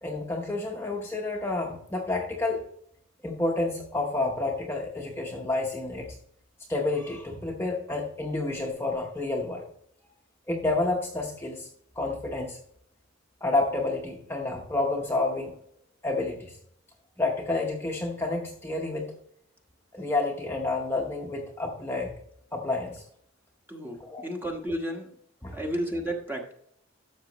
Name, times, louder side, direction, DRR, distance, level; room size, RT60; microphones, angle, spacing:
voice 1, 0.0-2.6 3.2-6.2 6.7-9.7 10.5-11.7 12.0-12.6 13.4-15.6 16.0-16.6 17.2-19.1 19.9-22.1 22.5-23.0 24.0-24.3 25.4-25.6, left 2 dB, 10° left, -1 dB, 1.0 m, -29 dB
voice 2, 23.7-25.1 25.5-26.5, equal, 10° right, 1 dB, 1.3 m, -32 dB
12.5 x 6.9 x 3.1 m, 0.67 s
head